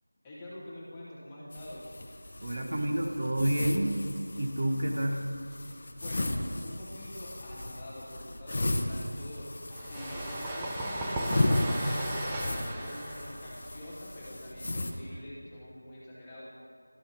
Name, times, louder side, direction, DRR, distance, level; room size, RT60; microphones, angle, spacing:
voice 1, 0.2-1.9 5.7-16.4, left 1 dB, 10° left, -8 dB, 0.8 m, -46 dB
sound 1, 1.5-14.9, left 1 dB, 40° left, 0.5 m, -35 dB
voice 2, 2.4-4.0 4.4-5.2, right 1 dB, 45° right, 2 dB, 0.7 m, -29 dB
sound 2, 9.7-15.2, right 1 dB, 10° right, 0.4 m, -36 dB
12.0 x 5.6 x 2.6 m, 2.4 s
figure-of-eight pair, 170°, 0 cm